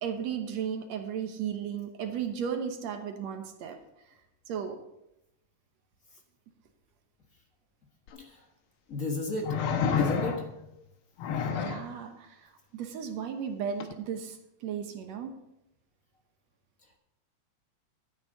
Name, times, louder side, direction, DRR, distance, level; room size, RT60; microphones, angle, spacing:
voice 1, 0.0-3.8 4.5-4.8 11.5-15.3, right 7 dB, 70° right, 5 dB, 2.1 m, -35 dB
sound 1, 8.1-8.2 9.4-10.6 11.2-11.9 13.8-13.9, left 6 dB, 75° left, 1.3 m, -29 dB
voice 2, 8.9-9.5 9.9-10.4, left 2 dB, 40° left, 1 dB, 1.3 m, -33 dB
13.0 x 9.5 x 4.0 m, 0.86 s
omnidirectional pair, 3.5 m